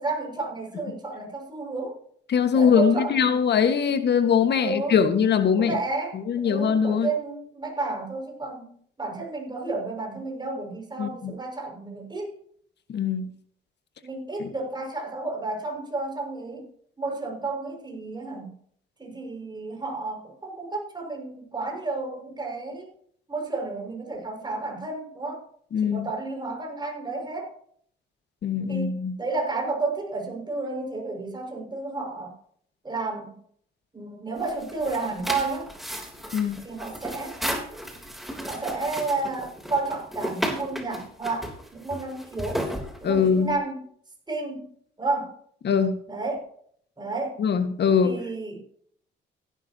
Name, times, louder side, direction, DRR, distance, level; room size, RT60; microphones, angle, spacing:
voice 1, 0.0-2.0 2.5-3.7 4.5-5.0 5.6-12.4 14.0-16.7 17.0-18.6 19.0-22.9 23.3-25.5 25.8-27.5 28.7-32.4 32.8-33.4 33.9-35.7 36.6-37.4 38.5-42.7 43.0-43.9 44.3-45.3 46.1-46.5 47.0-47.4 48.0-48.6, right 3 dB, 20° right, 0 dB, 6.1 m, -31 dB
voice 2, 2.3-5.8 6.3-7.1 11.0-11.3 12.9-13.3 14.4-14.5 25.7-26.1 28.4-29.2 36.3-36.6 43.0-43.5 45.6-46.0 47.4-48.2, left 7 dB, 60° left, 8 dB, 1.7 m, -22 dB
sound 1, 34.4-43.5, equal, ahead, 3.4 m, -34 dB
16.0 x 12.0 x 2.9 m, 0.63 s
cardioid pair, 90°, 20 cm